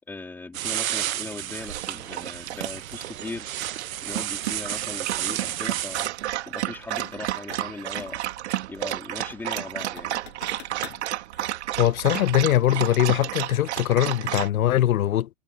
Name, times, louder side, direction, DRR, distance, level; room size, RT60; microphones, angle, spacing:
voice 1, 0.1-3.5 4.0-6.2 6.4-8.2 8.7-10.2, left 3 dB, 5° left, 3.3 m, -39 dB
sound 1, 0.5-6.1, right 12 dB, 75° right, 1.1 m, -32 dB
Dog, 1.6-14.5, right 13 dB, 55° right, 2.5 m, -32 dB
sound 2, 5.5-5.7 7.0-8.4 8.7-8.8 9.3-11.1, left 13 dB, 50° left, 7.4 m, -45 dB
voice 2, 11.8-15.3, left 12 dB, 80° left, 0.9 m, -21 dB
hypercardioid pair, 170°, 41 cm